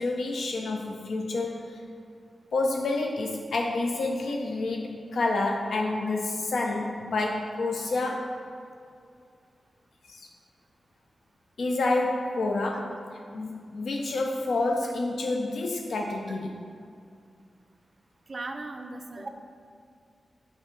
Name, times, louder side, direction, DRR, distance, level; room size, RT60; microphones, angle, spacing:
voice 1, 0.0-1.8 2.5-8.4 10.1-10.3 11.6-13.0 13.3-16.5, left 2 dB, 80° left, 1 dB, 0.4 m, -28 dB
voice 2, 18.3-19.3, right 2 dB, 35° right, 5 dB, 0.4 m, -37 dB
7.9 x 4.7 x 3.7 m, 2.3 s
wide cardioid pair, 175°, 0 cm